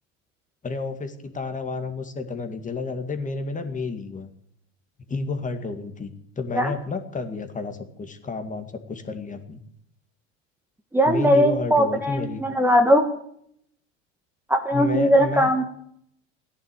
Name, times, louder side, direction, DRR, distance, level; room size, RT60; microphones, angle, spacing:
voice 1, 0.6-4.3 5.1-9.6 11.1-12.4 14.7-15.5, left 4 dB, 20° left, 7 dB, 2.1 m, -31 dB
voice 2, 10.9-13.1 14.5-15.6, equal, 5° right, 4 dB, 1.6 m, -19 dB
15.5 x 10.5 x 8.4 m, 0.69 s
hypercardioid pair, 105°, 38 cm